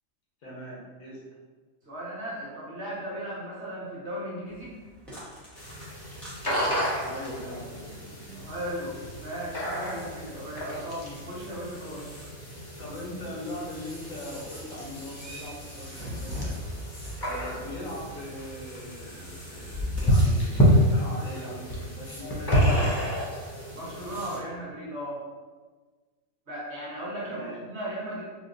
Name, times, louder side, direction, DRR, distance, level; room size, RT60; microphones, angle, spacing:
voice 1, 0.4-1.2 7.0-8.4 12.8-16.6 17.2-22.9 27.2-27.6, left 1 dB, 80° left, -4 dB, 1.3 m, -40 dB
voice 2, 1.8-4.8 8.4-12.1 23.7-25.2 26.5-28.2, right 1 dB, 55° right, -7 dB, 1.3 m, -36 dB
sound 1, 4.5-20.0, left 1 dB, ahead, 0.8 m, -43 dB
sound 2, 5.6-24.4, equal, 30° left, 0.4 m, -29 dB
4.1 x 2.7 x 2.5 m, 1.4 s
omnidirectional pair, 1.4 m